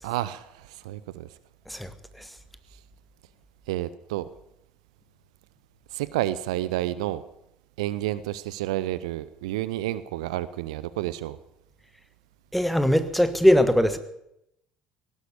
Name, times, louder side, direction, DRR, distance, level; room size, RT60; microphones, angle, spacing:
voice 1, 0.0-1.3 3.7-4.3 5.9-7.2 7.8-11.4, right 14 dB, 65° right, 17 dB, 0.6 m, -30 dB
voice 2, 1.7-2.3 12.5-14.0, equal, ahead, 11 dB, 1.4 m, -21 dB
17.5 x 11.5 x 6.9 m, 0.82 s
figure-of-eight pair, 60°, 4 cm